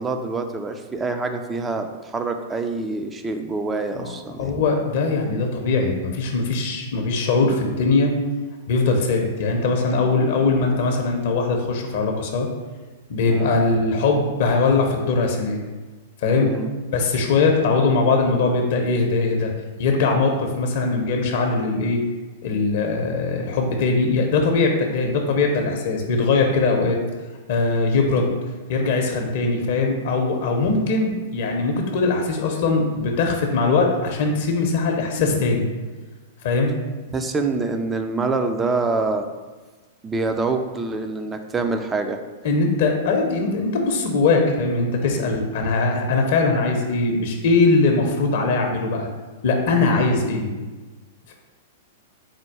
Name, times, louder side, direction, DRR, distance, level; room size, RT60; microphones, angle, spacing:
voice 1, 0.0-4.5 13.3-13.6 16.4-16.7 37.1-39.3 40.0-42.2 45.2-45.3 49.8-50.0, right 3 dB, 15° right, 6 dB, 0.4 m, -26 dB
voice 2, 4.4-8.1 8.7-12.5 13.1-15.6 16.2-16.5 16.9-19.5 19.8-22.0 22.4-27.0 27.5-28.3 28.7-35.7 36.4-36.7 42.4-49.1 49.4-50.5, left 3 dB, 60° left, 2 dB, 0.6 m, -21 dB
4.3 x 2.3 x 4.6 m, 1.3 s
figure-of-eight pair, 105°, 0 cm